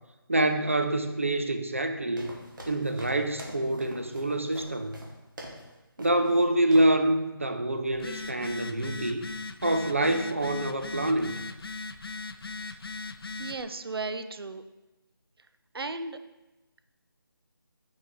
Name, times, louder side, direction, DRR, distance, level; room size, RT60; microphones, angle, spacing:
voice 1, 0.3-2.3 2.7-4.9 6.0-9.2 9.6-11.3, right 1 dB, 35° right, 6 dB, 0.4 m, -26 dB
sound 1, 2.2-5.7 6.0-6.4 6.7-7.0, right 1 dB, 55° right, 1.6 m, -45 dB
Telephone, 7.9-13.6, left 3 dB, 75° left, 0.5 m, -39 dB
voice 2, 13.4-14.6 15.7-16.2, right 3 dB, 75° right, 9 dB, 0.6 m, -35 dB
5.6 x 5.3 x 3.8 m, 1.0 s
figure-of-eight pair, 175°, 13 cm